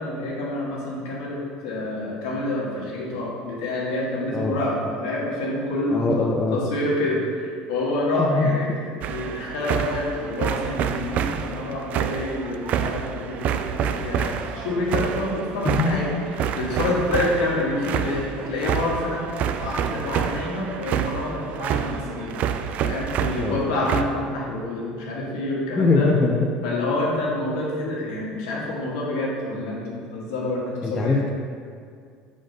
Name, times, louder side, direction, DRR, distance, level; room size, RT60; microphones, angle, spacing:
voice 1, 0.0-8.7 9.1-22.3 22.8-26.1 26.6-31.2, left 1 dB, 80° left, -4 dB, 1.5 m, -27 dB
voice 2, 5.9-6.6 8.2-8.8 15.6-16.1 23.4-23.6 25.7-26.5 30.8-31.3, left 3 dB, 20° left, 1 dB, 0.6 m, -22 dB
sound 1, 9.0-24.0, right 8 dB, 55° right, 0.3 m, -28 dB
5.0 x 3.9 x 5.5 m, 2.2 s
supercardioid pair, 100°, 3 cm